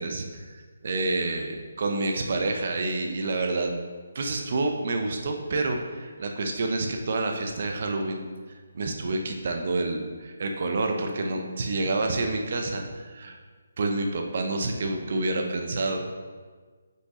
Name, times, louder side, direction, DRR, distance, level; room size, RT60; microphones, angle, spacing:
voice 1, 0.0-3.7 4.1-8.2 8.7-13.4 13.8-16.0, right 2 dB, 50° right, 4 dB, 0.9 m, -28 dB
7.8 x 5.6 x 3.2 m, 1.5 s
figure-of-eight pair, 145°, 0 cm